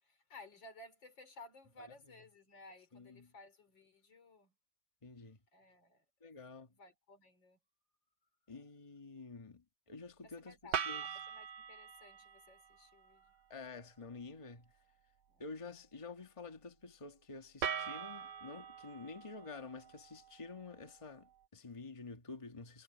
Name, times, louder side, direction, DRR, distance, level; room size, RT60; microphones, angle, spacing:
voice 1, 0.0-4.5 5.5-6.0 6.7-7.6 10.2-13.4 15.3-15.5, left 2 dB, 90° left, 4.5 m, -57 dB
voice 2, 2.9-3.3 5.0-5.4 6.2-6.7 8.5-11.0 13.5-14.7 15.4-22.8, left 4 dB, 20° left, 1.4 m, -49 dB
sound 1, 10.7-12.8 17.6-20.8, right 7 dB, 70° right, 1.6 m, -42 dB
omnidirectional pair, 2.0 m